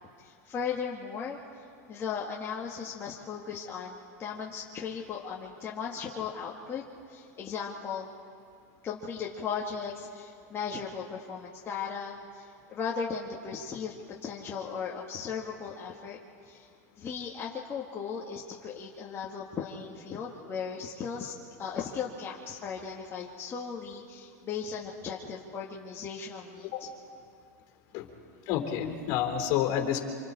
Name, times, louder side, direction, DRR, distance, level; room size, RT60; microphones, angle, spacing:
voice 1, 0.2-1.4 1.9-8.1 8.8-13.9 14.2-16.2 16.4-16.7 17.0-21.3 21.6-26.7, left 6 dB, 30° left, -3 dB, 2.0 m, -37 dB
voice 2, 28.5-30.0, left 10 dB, 50° left, 3 dB, 3.5 m, -29 dB
26.5 x 25.0 x 4.4 m, 2.3 s
hypercardioid pair, 115°, 9 cm